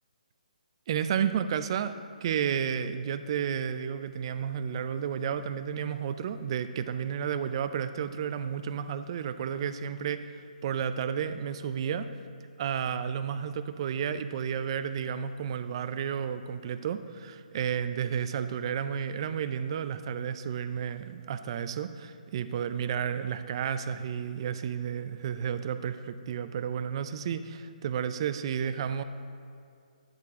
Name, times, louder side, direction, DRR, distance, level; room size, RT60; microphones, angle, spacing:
voice 1, 0.9-1.9 2.2-12.1 12.6-29.0, right 8 dB, 35° right, 11 dB, 0.4 m, -32 dB
10.5 x 6.7 x 3.6 m, 2.4 s
hypercardioid pair, 155°, 5 cm